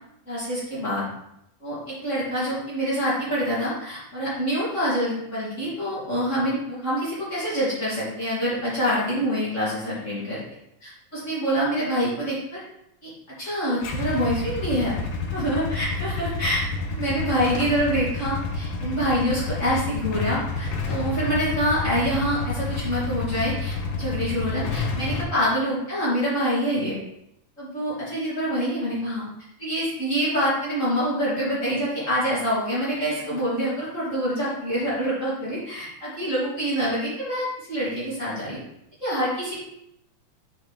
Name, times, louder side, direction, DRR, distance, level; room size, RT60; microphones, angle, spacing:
voice 1, 0.3-1.1 1.6-10.4 10.8-12.6 13.0-13.1 13.4-14.9 15.3-16.6 16.9-27.0 27.6-29.2 29.6-38.6 39.0-39.6, equal, 25° left, -9 dB, 2.7 m, -26 dB
Motorcycle / Engine starting / Idling, 13.8-25.2, left 4 dB, 80° left, 2.2 m, -29 dB
6.0 x 5.8 x 3.3 m, 0.80 s
omnidirectional pair, 3.5 m